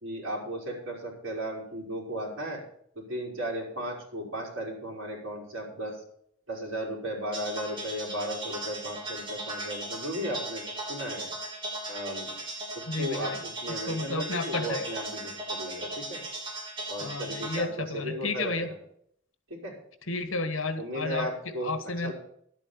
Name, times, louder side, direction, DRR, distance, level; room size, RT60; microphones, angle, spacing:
voice 1, 0.0-2.6 2.9-5.9 6.5-10.6 10.9-11.3 11.9-12.3 12.7-16.2 16.9-18.7 19.5-19.7 20.8-21.7 22.0-22.1, equal, 75° right, -4 dB, 4.8 m, -35 dB
sound 1, 7.3-17.6, right 2 dB, 25° right, 4.1 m, -37 dB
voice 2, 12.9-13.4 13.7-14.9 17.0-18.7 20.0-22.1, left 3 dB, 80° left, 9 dB, 1.5 m, -32 dB
11.5 x 8.6 x 7.0 m, 0.67 s
head